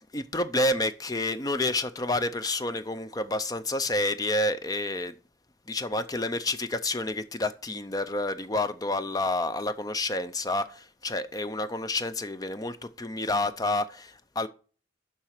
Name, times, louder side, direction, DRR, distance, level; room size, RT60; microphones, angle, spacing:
voice 1, 0.1-5.1 5.7-14.5, left 2 dB, 20° left, 0.4 m, -29 dB
7.3 x 5.8 x 6.4 m
head